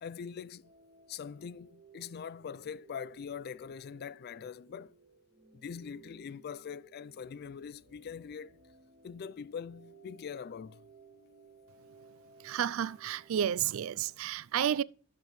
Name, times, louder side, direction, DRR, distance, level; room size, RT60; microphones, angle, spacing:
voice 1, 0.0-0.7 1.1-5.0 5.5-8.6 9.0-10.8, left 7 dB, 50° left, 0.3 m, -43 dB
sound 1, 0.6-14.2, right 4 dB, 55° right, 1.7 m, -60 dB
voice 2, 12.4-14.8, right 9 dB, 75° right, 0.4 m, -31 dB
12.0 x 7.5 x 3.1 m
head